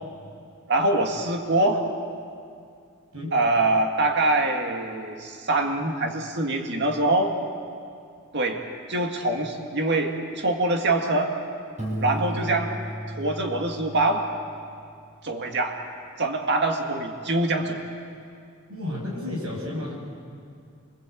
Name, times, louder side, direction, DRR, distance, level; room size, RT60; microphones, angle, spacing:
voice 1, 0.7-1.8 3.3-7.3 8.3-8.6 8.9-11.3 12.0-12.7 13.2-14.2 15.2-15.8 16.2-17.8, right 2 dB, 55° right, 3 dB, 2.0 m, -24 dB
Piano, 11.8-14.5, equal, 35° right, 6.2 m, -34 dB
voice 2, 18.7-19.9, left 1 dB, 85° right, -1 dB, 7.8 m, -32 dB
28.0 x 24.0 x 8.5 m, 2.3 s
head